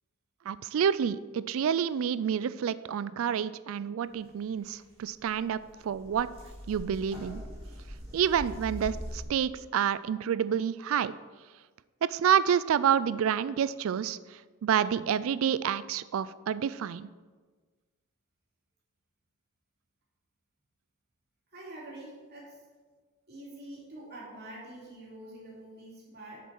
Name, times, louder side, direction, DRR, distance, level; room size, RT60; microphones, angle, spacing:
voice 1, 0.5-6.3 6.7-7.4 8.1-11.1 12.1-14.2 14.6-17.1, right 8 dB, 60° right, 16 dB, 0.3 m, -28 dB
sound 1, 4.8-4.9 5.1-9.2, equal, 25° right, 2.8 m, -42 dB
voice 2, 21.5-22.6 23.3-26.4, right 1 dB, 45° right, -5 dB, 2.8 m, -46 dB
7.4 x 7.1 x 4.6 m, 1.4 s
head